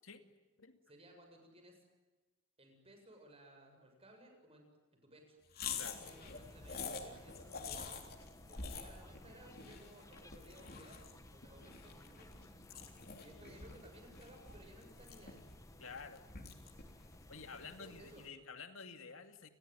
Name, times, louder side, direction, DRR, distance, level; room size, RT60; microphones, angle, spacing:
voice 1, 0.9-1.8 2.6-4.6 4.9-5.4 5.9-8.1 8.4-12.5 13.2-15.4 17.8-18.3, right 1 dB, 30° right, 4 dB, 7.7 m, -59 dB
sound 1, 5.5-18.0, left 5 dB, 50° left, 3.6 m, -48 dB
sound 2, 5.8-18.3, left 1 dB, 15° left, 1.9 m, -59 dB
voice 2, 15.8-16.3 17.3-19.5, left 4 dB, 85° left, 7 dB, 2.5 m, -50 dB
29.5 x 21.5 x 9.3 m, 1.2 s
head